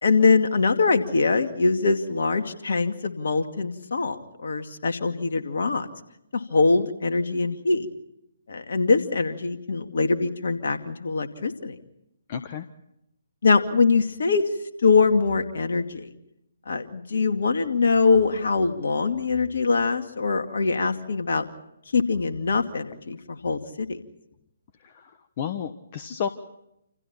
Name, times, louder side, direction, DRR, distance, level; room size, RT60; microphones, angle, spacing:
voice 1, 0.0-5.9 6.3-7.9 8.5-11.8 13.4-14.5 14.8-16.1 16.7-21.4 21.9-24.0, left 4 dB, 60° left, 6 dB, 2.3 m, -23 dB
voice 2, 12.3-12.7 24.8-26.3, left 8 dB, 35° left, 9 dB, 1.2 m, -32 dB
29.0 x 28.0 x 4.4 m, 0.83 s
figure-of-eight pair, 135°, 0 cm